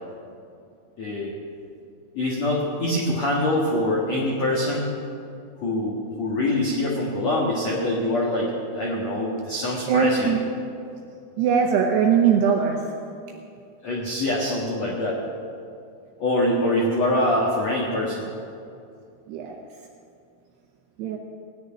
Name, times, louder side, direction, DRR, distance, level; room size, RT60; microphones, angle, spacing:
voice 1, 1.0-1.3 2.1-5.0 5.6-10.3 13.8-15.2 16.2-18.3, left 1 dB, 85° left, -3 dB, 1.5 m, -24 dB
voice 2, 9.9-10.4 11.4-12.8 19.3-19.6 21.0-21.2, right 6 dB, 80° right, 2 dB, 2.5 m, -20 dB
17.5 x 6.5 x 9.7 m, 2.5 s
omnidirectional pair, 5.8 m